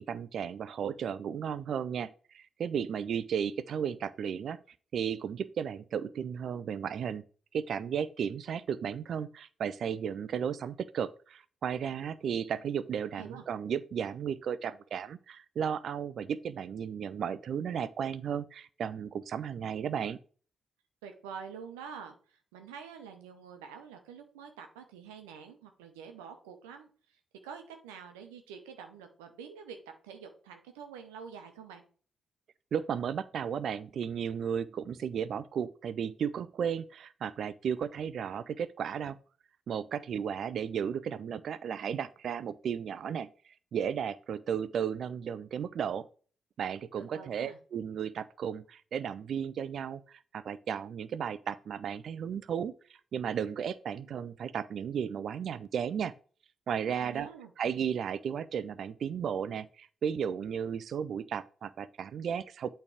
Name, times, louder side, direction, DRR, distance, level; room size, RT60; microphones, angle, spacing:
voice 1, 0.0-4.6 4.9-7.3 7.5-20.2 32.7-39.2 39.7-43.3 43.7-46.1 46.6-56.1 56.7-57.3 57.6-62.7, right 8 dB, 65° right, 0.5 m, -34 dB
voice 2, 13.1-13.4 21.0-29.8 30.0-31.8 47.0-47.6 57.0-57.5, right 7 dB, 85° right, 0.9 m, -47 dB
8.3 x 3.4 x 4.9 m
hypercardioid pair, 40°, 0 cm